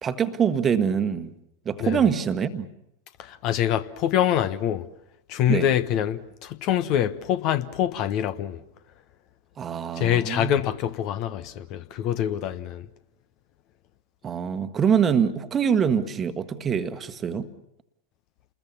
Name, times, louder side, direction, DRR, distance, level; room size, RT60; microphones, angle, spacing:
voice 1, 0.0-1.3 1.6-2.7 5.5-5.6 9.6-10.5 14.2-17.5, right 7 dB, 25° right, 1.5 m, -24 dB
voice 2, 3.2-4.9 5.3-8.6 9.9-12.9, left 10 dB, 40° left, 1.2 m, -25 dB
29.5 x 21.0 x 7.3 m
figure-of-eight pair, 90°, 0 cm